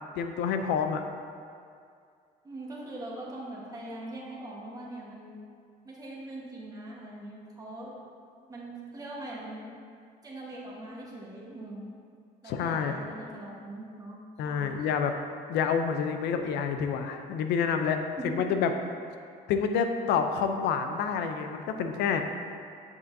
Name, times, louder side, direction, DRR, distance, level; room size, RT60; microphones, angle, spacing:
voice 1, 0.1-1.0 12.5-13.0 14.4-15.1 15.5-18.7 19.5-22.3, left 6 dB, 80° left, 6 dB, 0.5 m, -28 dB
voice 2, 2.4-5.4 5.8-7.9 8.5-9.7 10.2-11.9 12.4-14.2 14.4-14.7 18.2-18.6, right 1 dB, 20° right, -5 dB, 1.3 m, -41 dB
6.8 x 5.5 x 2.7 m, 2.3 s
cardioid pair, 110°, 17 cm